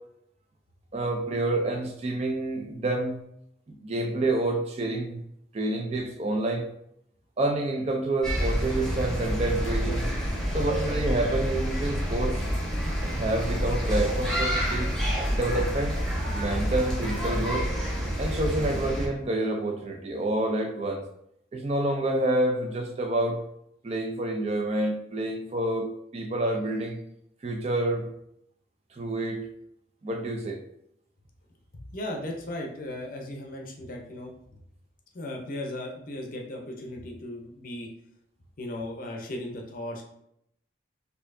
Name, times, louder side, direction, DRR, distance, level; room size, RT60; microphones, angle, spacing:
voice 1, 0.9-3.2 3.7-5.2 5.5-6.7 7.4-10.1 10.5-12.4 13.0-14.9 15.3-16.0 16.3-17.7 18.2-21.0 21.5-23.4 23.8-27.0 27.4-28.1 28.9-29.5 30.0-30.6, right 2 dB, 35° right, 4 dB, 0.4 m, -28 dB
sound 1, 8.2-19.1, equal, ahead, 0.8 m, -28 dB
voice 2, 31.7-34.6 35.1-37.9 38.6-40.0, left 1 dB, 45° left, 1 dB, 0.6 m, -36 dB
4.3 x 2.7 x 2.6 m, 0.75 s
head